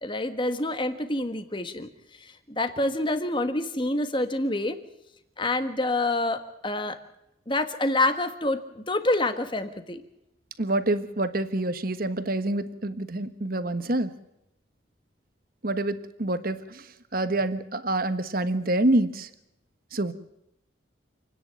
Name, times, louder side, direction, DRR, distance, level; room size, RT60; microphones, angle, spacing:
voice 1, 0.0-1.9 2.2-4.8 5.4-7.0 7.5-10.0, left 2 dB, 25° left, 9 dB, 1.6 m, -27 dB
voice 2, 10.6-14.1 15.6-16.8 17.1-19.3 19.9-20.1, right 2 dB, 50° right, 11 dB, 1.3 m, -27 dB
28.5 x 10.0 x 9.0 m, 0.84 s
head